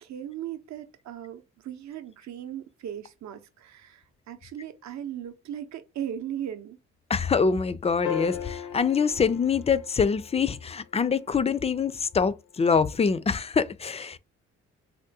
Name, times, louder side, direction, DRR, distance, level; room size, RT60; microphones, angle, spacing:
voice 1, 0.0-6.8, right 10 dB, 65° right, 0.7 m, -38 dB
voice 2, 7.1-14.2, left 5 dB, 20° left, 0.3 m, -25 dB
sound 1, 8.0-10.6 12.8-12.9, left 9 dB, 85° left, 0.6 m, -36 dB
3.5 x 2.2 x 2.7 m
supercardioid pair, 60°, 31 cm